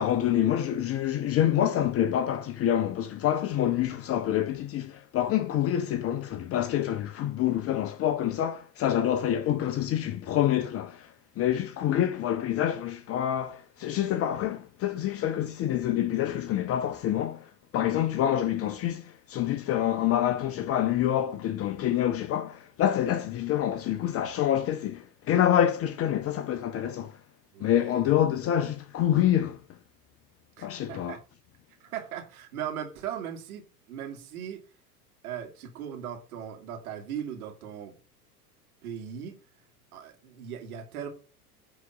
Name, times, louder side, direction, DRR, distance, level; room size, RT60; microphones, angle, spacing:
voice 1, 0.0-27.1 27.6-29.6 30.6-31.2, left 11 dB, 30° left, 0.7 m, -27 dB
voice 2, 27.5-28.1 30.6-31.2 31.8-34.6 35.2-38.0 38.8-39.4 39.9-41.1, right 9 dB, 65° right, 2.5 m, -38 dB
9.3 x 4.0 x 6.5 m
hypercardioid pair, 85°, 46 cm